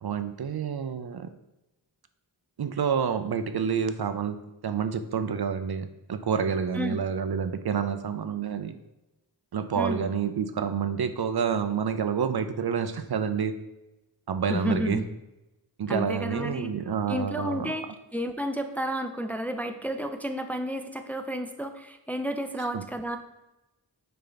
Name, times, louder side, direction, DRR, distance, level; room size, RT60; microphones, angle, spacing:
voice 1, 0.0-1.3 2.6-4.4 4.6-8.8 9.5-13.5 14.3-15.0 15.8-17.7 22.6-22.8, right 7 dB, 65° right, 10 dB, 0.6 m, -28 dB
voice 2, 9.8-10.1 14.5-15.0 15.9-16.7 17.1-17.9 18.1-23.2, equal, 5° left, 7 dB, 0.5 m, -31 dB
6.8 x 4.4 x 4.0 m, 0.98 s
wide cardioid pair, 50°, 42 cm